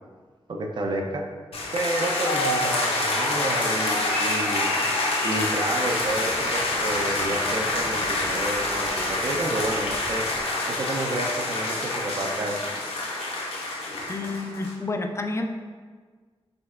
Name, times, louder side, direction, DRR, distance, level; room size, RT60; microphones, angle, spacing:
voice 1, 0.5-1.2 1.7-4.7 5.2-10.3 10.7-12.6, right 1 dB, 50° right, 2 dB, 0.5 m, -30 dB
sound 1, 1.5-14.7, left 2 dB, 75° left, 0.7 m, -27 dB
Tearing, 5.7-10.9 11.2-11.3, equal, 15° right, 0.7 m, -40 dB
voice 2, 14.1-15.5, left 2 dB, 30° left, 5 dB, 0.4 m, -29 dB
5.0 x 3.4 x 2.4 m, 1.5 s
cardioid pair, 70°, 10 cm